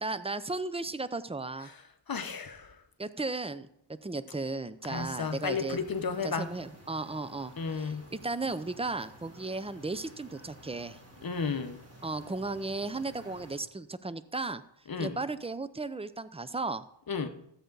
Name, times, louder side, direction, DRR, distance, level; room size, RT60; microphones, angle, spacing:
voice 1, 0.0-1.7 3.0-3.7 4.0-5.8 6.2-11.0 12.0-14.6 15.0-16.8, right 3 dB, 15° right, 0.5 m, -35 dB
voice 2, 1.6-2.8 4.8-6.5 7.6-8.1 11.2-11.8 14.9-15.2 17.1-17.3, left 5 dB, 50° left, 0.9 m, -33 dB
sound 1, 4.9-13.6, equal, 35° right, 3.2 m, -53 dB
13.5 x 7.9 x 3.9 m
wide cardioid pair, 65°, 45 cm